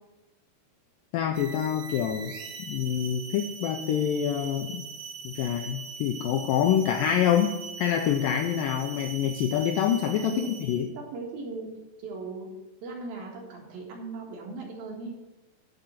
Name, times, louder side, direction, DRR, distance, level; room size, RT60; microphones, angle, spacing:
voice 1, 1.1-2.3 2.7-4.9 5.2-10.9, left 9 dB, 80° left, 4 dB, 2.0 m, -26 dB
sound 1, 1.3-10.9, right 5 dB, 85° right, 3.1 m, -41 dB
voice 2, 11.1-11.7 12.0-12.5 12.8-15.2, right 3 dB, 65° right, -2 dB, 3.4 m, -38 dB
10.5 x 3.9 x 7.5 m, 1.0 s
omnidirectional pair, 4.6 m